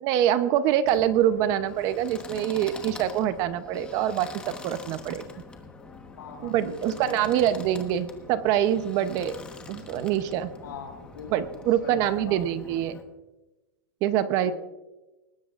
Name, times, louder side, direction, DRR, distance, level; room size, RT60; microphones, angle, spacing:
voice 1, 0.0-5.2 6.4-9.3 9.7-10.5 11.3-13.0 14.0-14.5, right 11 dB, 30° right, 12 dB, 0.7 m, -25 dB
sound 1, 0.8-13.0, left 4 dB, 10° left, 1.2 m, -44 dB
voice 2, 6.2-7.6 9.0-9.1 10.6-12.4 14.2-14.5, left 5 dB, 80° left, 1 dB, 6.3 m, -42 dB
20.5 x 19.5 x 2.5 m, 1.1 s
supercardioid pair, 160°, 11 cm